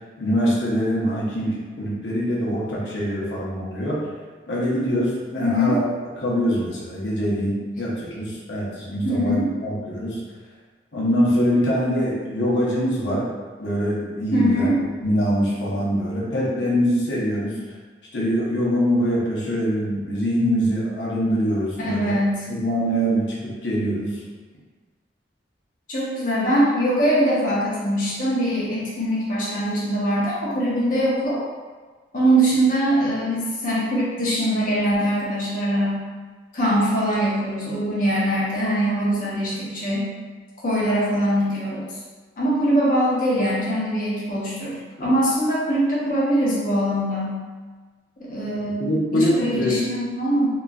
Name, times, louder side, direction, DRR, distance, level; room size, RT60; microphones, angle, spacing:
voice 1, 0.2-4.0 4.5-5.8 6.1-10.2 10.9-13.3 13.6-14.7 15.0-17.6 18.1-22.1 22.5-24.2 48.8-49.8, equal, 75° left, -6 dB, 0.8 m, -23 dB
voice 2, 5.4-5.8 9.0-9.5 14.3-14.7 21.8-22.4 25.9-31.4 32.1-36.0 36.5-40.1 40.6-41.8 42.4-47.4 48.2-50.5, equal, 50° left, -7 dB, 0.8 m, -22 dB
3.0 x 2.5 x 2.3 m, 1.4 s
head